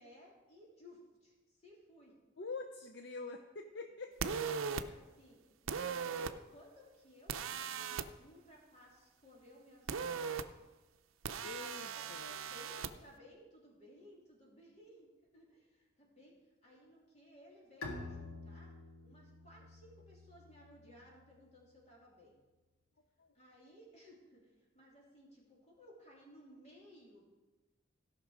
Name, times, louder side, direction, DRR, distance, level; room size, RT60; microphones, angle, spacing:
voice 1, 0.0-2.1 4.2-10.3 11.4-16.4 16.6-18.7 19.0-22.4 23.3-27.3, equal, 35° left, -3 dB, 3.1 m, -60 dB
voice 2, 2.4-4.3 11.4-12.4, left 3 dB, 55° left, 6 dB, 0.6 m, -45 dB
sound 1, 4.2-4.8 5.7-6.3 7.3-8.1 9.9-10.4 11.2-12.9, right 6 dB, 85° right, 0.6 m, -38 dB
Bowed string instrument, 17.8-21.3, left 2 dB, 90° left, 1.8 m, -49 dB
16.5 x 5.9 x 5.0 m, 1.2 s
head